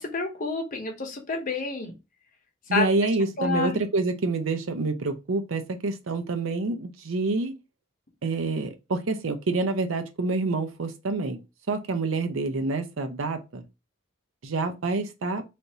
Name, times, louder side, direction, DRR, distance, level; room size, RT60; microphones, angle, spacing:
voice 1, 0.0-1.9 2.7-2.9 3.4-3.8, left 4 dB, 45° left, 0.9 m, -28 dB
voice 2, 2.7-7.5 8.2-11.4 11.7-13.6 14.4-15.4, right 3 dB, 90° right, 0.6 m, -27 dB
3.4 x 2.6 x 2.7 m
head